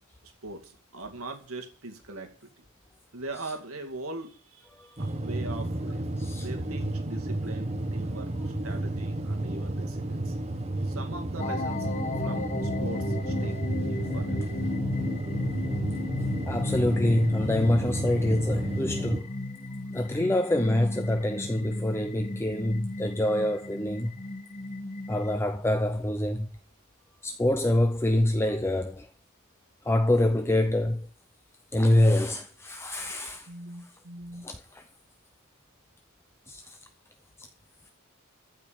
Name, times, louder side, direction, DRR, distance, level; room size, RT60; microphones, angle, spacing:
voice 1, 0.4-2.6 3.1-6.1 6.3-10.4 10.8-11.9 12.2-14.5 33.5-34.5, right 2 dB, 70° right, 2.2 m, -41 dB
sound 1, 5.0-19.2, right 1 dB, 30° right, 1.2 m, -32 dB
sound 2, 11.4-25.4, left 2 dB, 35° left, 1.0 m, -34 dB
voice 2, 16.5-19.3 19.9-24.1 25.1-26.5 27.2-29.1 29.9-31.1 31.7-33.5 34.4-34.8 36.5-36.6, left 1 dB, 10° left, 0.7 m, -25 dB
15.0 x 5.2 x 9.1 m
head